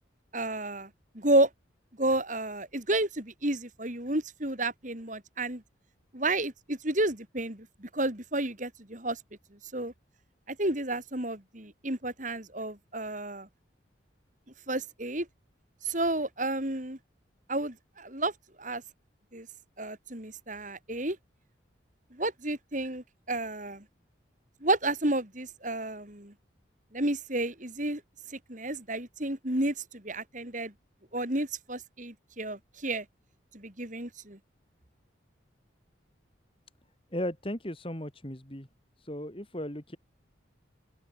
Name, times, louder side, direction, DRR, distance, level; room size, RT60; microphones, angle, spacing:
voice 1, 0.3-0.9 1.1-1.5 2.0-5.6 6.1-9.2 9.7-9.9 10.5-13.5 14.7-15.3 15.8-17.0 17.5-18.3 18.6-18.8 19.3-19.5 19.8-21.2 22.1-23.8 24.6-26.3 26.9-28.0 28.3-30.7 31.1-33.1 33.5-34.4, right 2 dB, 40° right, 4.0 m, -31 dB
voice 2, 37.1-38.7 39.0-40.0, left 1 dB, 30° left, 3.2 m, -36 dB
open air
head